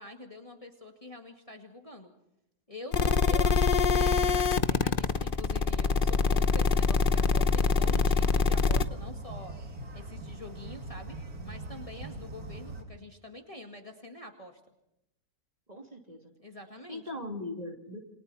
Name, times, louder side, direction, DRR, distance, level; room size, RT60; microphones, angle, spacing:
voice 1, 0.0-2.1 2.7-9.5 9.9-11.2 11.4-14.6 16.4-17.0, left 1 dB, 20° left, 3 dB, 2.1 m, -46 dB
sound 1, 2.9-8.8, left 5 dB, 40° left, 0.9 m, -24 dB
sound 2, 6.9-12.8, right 1 dB, 65° right, 2.9 m, -41 dB
voice 2, 15.7-16.3 16.9-18.0, left 2 dB, 25° right, 2 dB, 2.8 m, -39 dB
28.5 x 24.0 x 4.2 m, 0.83 s
omnidirectional pair, 1.7 m